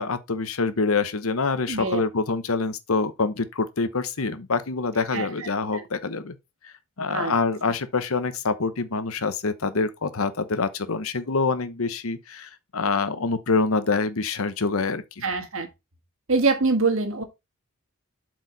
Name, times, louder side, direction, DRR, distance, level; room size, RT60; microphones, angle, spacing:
voice 1, 0.0-6.4 6.6-15.2, left 4 dB, 75° left, 0.9 m, -26 dB
voice 2, 1.7-2.0 5.1-5.8 7.1-7.3 15.2-15.7 16.3-17.2, right 3 dB, 65° right, 1.7 m, -24 dB
7.9 x 4.8 x 4.0 m
head